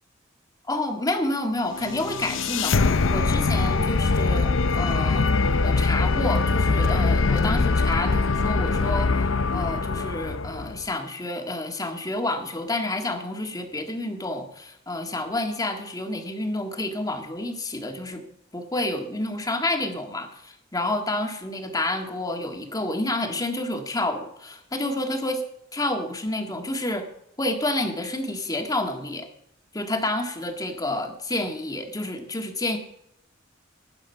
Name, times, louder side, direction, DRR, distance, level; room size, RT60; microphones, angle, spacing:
voice 1, 0.7-5.3 5.6-18.2 18.5-25.4 25.7-27.1 27.4-29.3 29.7-32.8, left 1 dB, 20° left, 4 dB, 1.8 m, -29 dB
sound 1, 1.7-10.9, left 3 dB, 70° left, 0.7 m, -23 dB
19.0 x 8.9 x 5.7 m, 0.80 s
head